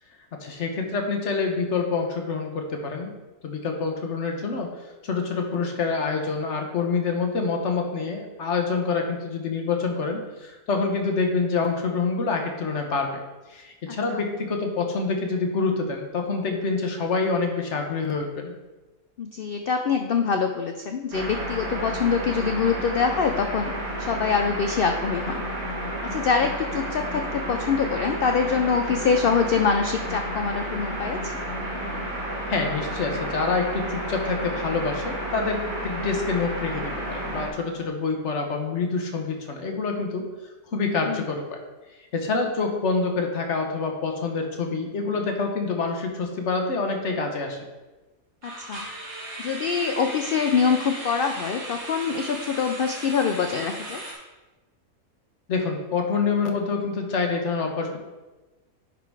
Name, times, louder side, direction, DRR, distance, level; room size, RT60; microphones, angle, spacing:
voice 1, 0.4-3.1 3.4-4.7 5.0-13.2 13.5-18.5 32.5-40.2 40.7-41.6 42.1-47.6 55.5-58.0, left 4 dB, 55° left, 3 dB, 1.3 m, -26 dB
voice 2, 19.2-23.7 24.0-25.4 26.0-31.3 41.1-41.2 48.6-48.9 49.4-54.0, left 5 dB, 75° left, 5 dB, 0.5 m, -24 dB
sound 1, 21.1-37.5, right 1 dB, 75° right, 2.1 m, -31 dB
sound 2, 42.8-43.0 43.5-43.6 48.4-54.1, right 1 dB, 50° right, 1.9 m, -37 dB
10.5 x 3.8 x 4.7 m, 1.1 s
omnidirectional pair, 1.5 m